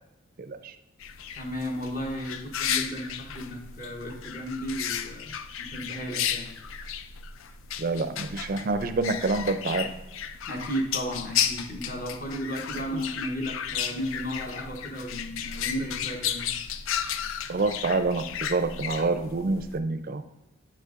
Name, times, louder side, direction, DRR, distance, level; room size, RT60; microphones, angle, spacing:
voice 1, 0.4-0.7 7.8-9.9 12.9-13.0 17.5-20.2, right 3 dB, 45° right, 9 dB, 0.4 m, -27 dB
sound 1, 1.0-19.8, left 8 dB, 75° left, 0.4 m, -34 dB
voice 2, 1.3-6.5 10.5-16.5, equal, 40° left, 0 dB, 0.9 m, -34 dB
8.1 x 6.5 x 2.4 m, 0.97 s
head